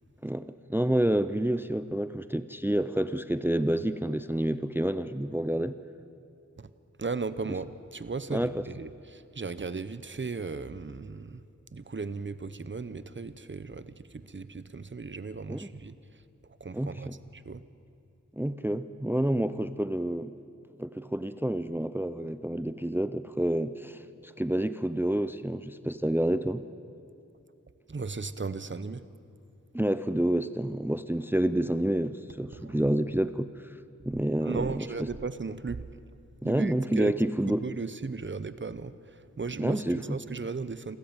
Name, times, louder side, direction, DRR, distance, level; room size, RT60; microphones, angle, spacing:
voice 1, 0.2-5.8 7.5-7.6 8.3-8.6 15.5-15.7 16.7-17.2 18.3-20.3 20.8-26.6 29.7-33.5 34.1-34.9 36.4-37.6 39.6-40.2, right 1 dB, 5° right, 13 dB, 0.6 m, -28 dB
voice 2, 7.0-11.4 11.7-15.9 16.6-17.6 27.9-29.0 32.6-32.8 34.4-35.8 36.4-37.1 37.5-41.0, right 4 dB, 40° right, 14 dB, 0.9 m, -36 dB
27.5 x 13.5 x 8.9 m, 2.5 s
wide cardioid pair, 55°, 29 cm